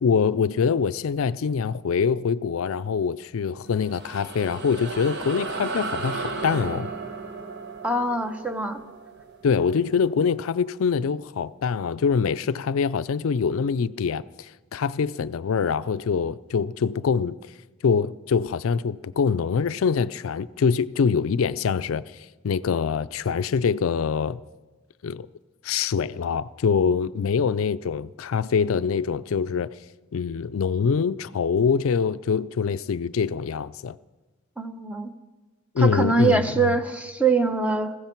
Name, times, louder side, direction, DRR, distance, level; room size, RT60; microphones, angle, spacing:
voice 1, 0.0-6.9 9.4-17.4 17.8-22.0 22.4-24.4 25.0-25.3 25.6-29.7 30.1-34.0 35.7-36.7, left 6 dB, 80° left, 0.4 m, -24 dB
sound 1, 3.7-10.5, right 3 dB, 55° right, 1.3 m, -35 dB
voice 2, 7.8-8.8 34.6-35.1 35.8-38.0, right 3 dB, 5° right, 0.8 m, -23 dB
20.5 x 15.5 x 4.5 m
head